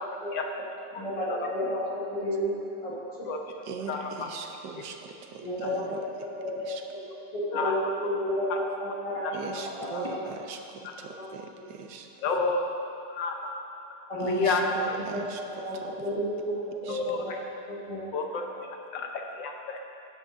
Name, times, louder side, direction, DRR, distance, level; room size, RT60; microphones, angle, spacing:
voice 1, 0.0-0.4 0.9-1.0 1.3-1.4 3.2-3.4 3.9-4.3 4.9-5.0 5.6-5.7 7.5-7.8 8.5-8.6 9.2-9.3 12.2-12.6 13.1-13.5 14.3-14.6 16.9-17.4 18.1-18.4 18.9-19.1 19.3-19.8, left 4 dB, 80° left, 2 dB, 1.5 m, -30 dB
voice 2, 0.9-2.5 2.8-3.3 5.4-7.0 7.3-10.2 11.1-11.3 12.2-12.4 14.1-15.2 15.5-17.3 17.7-18.3, equal, 20° left, -7 dB, 1.9 m, -32 dB
voice 3, 3.7-6.0 6.6-6.8 9.3-12.1 14.2-15.4 15.8-16.0 16.9-17.0, right 5 dB, 75° right, 5 dB, 1.4 m, -40 dB
13.5 x 10.5 x 2.7 m, 2.6 s
omnidirectional pair, 2.0 m